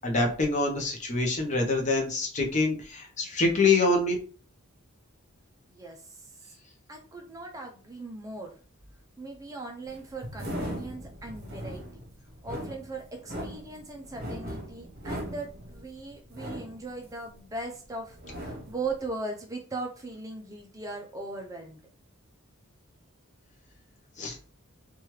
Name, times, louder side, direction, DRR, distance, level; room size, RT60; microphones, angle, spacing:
voice 1, 0.0-4.2 24.2-24.4, left 3 dB, 35° left, 1 dB, 0.6 m, -25 dB
voice 2, 5.7-6.6 6.9-8.6 9.2-12.0 12.4-21.8, right 3 dB, 15° right, 2 dB, 0.3 m, -39 dB
sound 1, 9.9-17.8 18.1-18.9, equal, 45° right, 1.0 m, -39 dB
3.0 x 2.3 x 3.0 m, 0.38 s
head